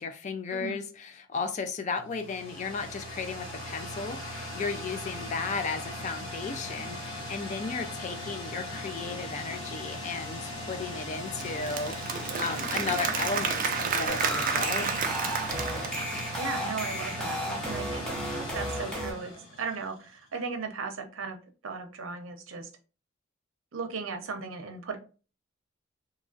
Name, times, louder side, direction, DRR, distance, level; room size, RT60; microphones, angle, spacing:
voice 1, 0.0-15.1, left 4 dB, 35° left, 7 dB, 0.3 m, -35 dB
sound 1, 1.9-20.0, left 1 dB, 80° left, 1.1 m, -38 dB
Applause / Crowd, 11.1-16.5, right 6 dB, 40° right, 0.4 m, -31 dB
sound 2, 14.1-19.1, equal, 5° left, 0.6 m, -34 dB
voice 2, 14.5-15.0 16.4-18.1 18.5-21.4 21.6-22.7 23.7-25.0, right 5 dB, 90° right, 5 dB, 0.6 m, -37 dB
2.9 x 2.4 x 2.3 m, 0.35 s
head